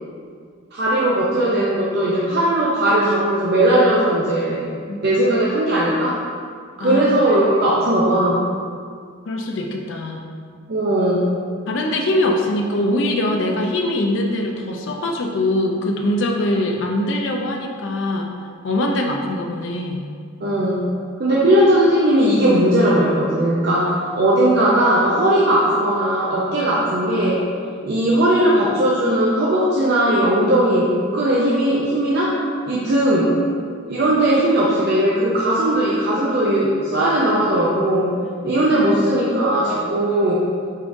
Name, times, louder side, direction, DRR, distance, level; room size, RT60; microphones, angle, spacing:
voice 1, 0.7-4.7 5.0-6.2 6.8-8.5 10.7-11.3 20.4-20.8 21.2-27.4 27.8-32.4 32.6-33.3 33.9-38.2 38.4-40.5, right 1 dB, 50° right, -6 dB, 0.5 m, -18 dB
voice 2, 4.9-5.2 6.8-7.4 7.7-8.0 9.3-10.3 11.7-18.3 18.6-20.0 38.2-38.5, left 1 dB, 65° left, 1 dB, 0.5 m, -23 dB
5.4 x 3.6 x 2.6 m, 2.1 s
head